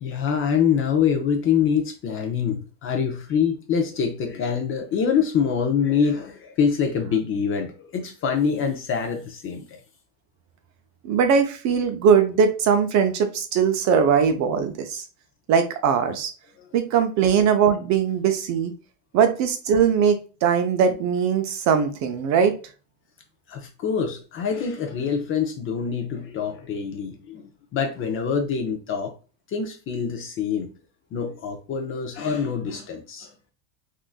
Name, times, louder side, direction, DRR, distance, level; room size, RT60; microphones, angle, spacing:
voice 1, 0.0-9.6 16.6-16.7 23.5-27.4 27.7-29.1 29.5-30.7 31.1-33.3, left 7 dB, 30° left, 0.4 m, -25 dB
voice 2, 11.0-15.0 15.5-16.3 16.7-18.7 19.1-22.5, right 7 dB, 40° right, 0.5 m, -20 dB
3.7 x 2.5 x 2.3 m
supercardioid pair, 135°, 44 cm